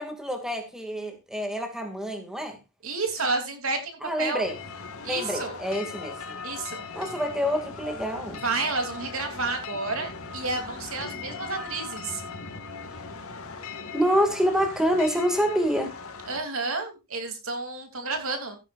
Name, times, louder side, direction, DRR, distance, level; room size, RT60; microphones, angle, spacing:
voice 1, 0.0-2.6 4.0-4.5 5.0-6.4 6.9-8.4 13.9-15.9, equal, 5° right, 2.6 m, -27 dB
voice 2, 2.8-4.5 5.0-5.6 6.4-6.8 8.4-12.2 16.3-18.6, right 3 dB, 70° right, 3.3 m, -30 dB
sound 1, 4.4-16.4, left 4 dB, 80° left, 2.2 m, -39 dB
16.0 x 9.7 x 2.6 m
head